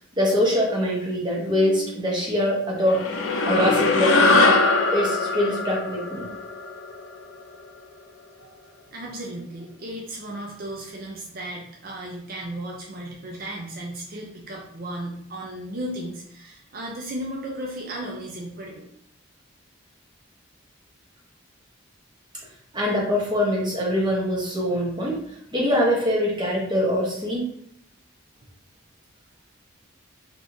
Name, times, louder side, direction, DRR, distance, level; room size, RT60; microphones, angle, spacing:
voice 1, 0.2-3.0 3.5-4.6 4.9-6.3 22.7-25.2 25.5-27.4, equal, 20° right, -3 dB, 0.9 m, -23 dB
sound 1, 2.9-7.5, left 3 dB, 70° left, 0.5 m, -21 dB
voice 2, 8.9-18.9, right 1 dB, 45° right, -2 dB, 0.5 m, -35 dB
3.4 x 2.9 x 2.6 m, 0.70 s
head